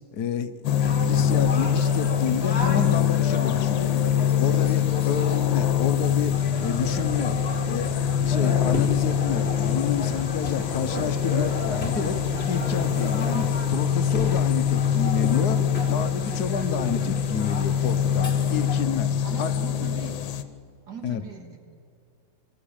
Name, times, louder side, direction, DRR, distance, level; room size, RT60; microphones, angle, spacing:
voice 1, 0.1-7.4 7.6-12.2 12.5-19.1 19.4-19.9 21.0-21.3, left 7 dB, 60° left, 10 dB, 1.2 m, -30 dB
sound 1, 0.6-20.4, left 9 dB, 75° left, 1.6 m, -24 dB
sound 2, 0.8-18.8, left 2 dB, 35° left, 1.9 m, -34 dB
sound 3, 6.0-13.1, right 5 dB, 80° right, 2.0 m, -40 dB
voice 2, 19.2-20.2 20.9-21.8, right 5 dB, 60° right, 4 dB, 2.2 m, -40 dB
24.5 x 15.0 x 8.7 m, 2.4 s
omnidirectional pair, 2.1 m